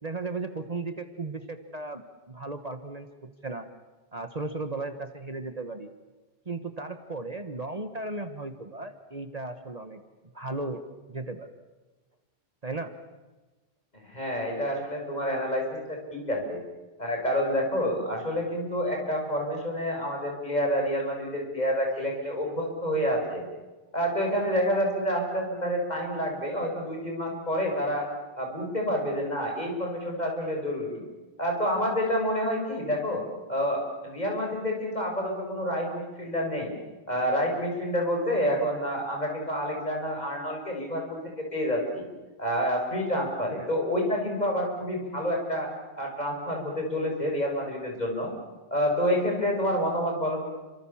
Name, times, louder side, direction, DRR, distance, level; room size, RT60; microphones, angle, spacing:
voice 1, 0.0-2.0 2.3-3.1 3.4-3.7 4.1-5.9 6.4-10.0 10.3-10.8 11.1-11.5 12.6-12.9 43.5-43.7, right 3 dB, 35° right, 8 dB, 1.4 m, -35 dB
voice 2, 14.0-16.6 17.0-23.4 23.9-28.1 28.4-31.0 31.4-33.2 33.5-36.7 37.1-41.2 41.5-42.1 42.4-45.7 46.0-48.3 48.7-50.4, equal, 40° left, 1 dB, 7.1 m, -28 dB
29.5 x 26.0 x 7.3 m, 1.2 s
omnidirectional pair, 1.1 m